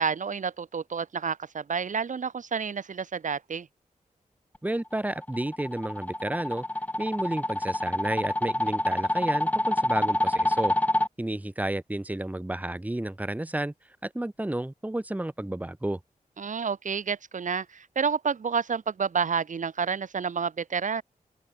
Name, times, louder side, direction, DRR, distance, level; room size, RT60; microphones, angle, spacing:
voice 1, 0.0-3.7 16.4-21.0, right 6 dB, 65° right, 3.6 m, -29 dB
voice 2, 4.6-6.6 7.0-10.7 11.2-13.7 14.0-16.0, right 1 dB, 10° right, 2.6 m, -31 dB
sound 1, 4.9-11.1, left 1 dB, 10° left, 1.1 m, -27 dB
open air
wide cardioid pair, 130°, 14 cm